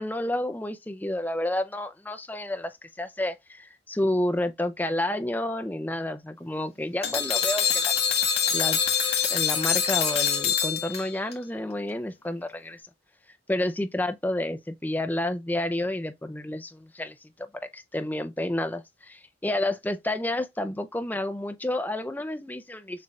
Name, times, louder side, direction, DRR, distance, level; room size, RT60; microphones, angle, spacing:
voice 1, 0.0-7.9 8.5-8.8 9.3-12.8 13.5-17.5 17.7-23.0, left 1 dB, 10° left, 0.5 m, -30 dB
sound 1, 7.0-11.3, left 7 dB, 35° left, 1.6 m, -25 dB
6.7 x 2.5 x 3.1 m
head